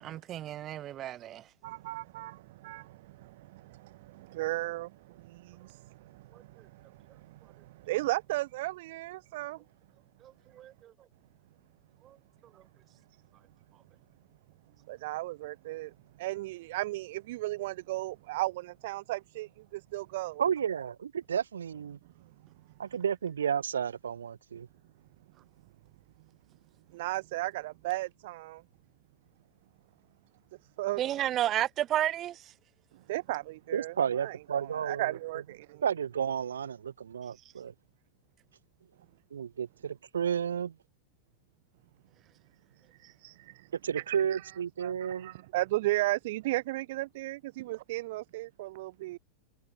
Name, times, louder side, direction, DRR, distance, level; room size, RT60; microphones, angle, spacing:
voice 1, 0.0-1.4 6.3-6.4 10.2-10.9 12.0-12.2 31.0-32.5, right 12 dB, 30° right, 1.1 m, -32 dB
voice 2, 1.6-2.9 3.2-3.3 4.1-4.9 5.3-5.8 7.9-9.6 14.9-15.9 16.2-20.4 26.9-28.6 30.8-31.0 33.1-35.8 43.2-43.5 44.0-44.5 44.8-49.2, right 18 dB, 50° right, 0.9 m, -35 dB
voice 3, 20.4-22.0 22.8-24.7 33.7-35.2 35.8-37.7 39.3-40.7 43.8-45.3, right 8 dB, 65° right, 1.4 m, -32 dB
figure-of-eight pair, 90°, 0 cm